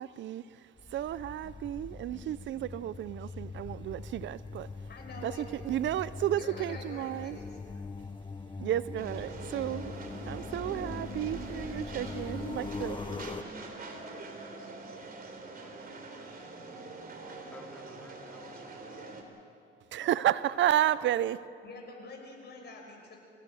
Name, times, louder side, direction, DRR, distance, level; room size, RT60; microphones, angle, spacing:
voice 1, 0.0-4.9 5.2-7.4 8.6-13.1 19.9-21.4, right 12 dB, 70° right, 17 dB, 0.6 m, -32 dB
sound 1, 0.8-13.4, left 4 dB, 25° left, 0.9 m, -42 dB
voice 2, 4.9-5.5 6.4-7.5 21.6-23.2, left 3 dB, 55° left, 1 dB, 5.7 m, -46 dB
sound 2, 9.0-19.2, right 3 dB, 50° right, 3.2 m, -44 dB
voice 3, 15.0-16.9 17.5-18.7 20.0-20.6 21.0-21.1, left 1 dB, 5° left, 1 dB, 2.8 m, -55 dB
27.5 x 16.5 x 6.3 m, 2.4 s
cardioid pair, 90°, 20 cm